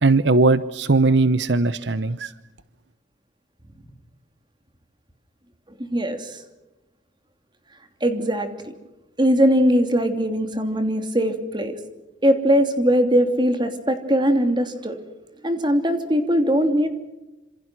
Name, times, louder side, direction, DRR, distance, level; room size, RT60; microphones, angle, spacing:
voice 1, 0.0-2.3, right 3 dB, 70° right, 15 dB, 0.8 m, -19 dB
voice 2, 5.9-6.4 8.0-8.7 9.2-11.7 12.2-15.0 15.4-16.9, equal, 25° right, 7 dB, 2.9 m, -20 dB
27.5 x 27.0 x 6.2 m, 0.99 s
head